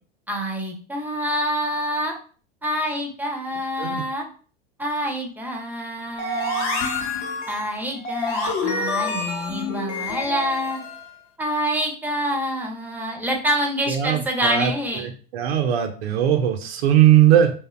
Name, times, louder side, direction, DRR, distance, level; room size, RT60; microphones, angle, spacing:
voice 1, 0.3-2.2 2.6-4.3 4.8-6.9 7.5-10.8 11.4-15.1, equal, 5° right, 1 dB, 0.5 m, -26 dB
sound 1, 6.2-11.1, left 3 dB, 50° left, 0.7 m, -27 dB
voice 2, 13.9-14.7 15.3-17.5, right 11 dB, 80° right, 5 dB, 0.5 m, -18 dB
2.6 x 2.0 x 2.4 m, 0.40 s
hypercardioid pair, 95°, 30 cm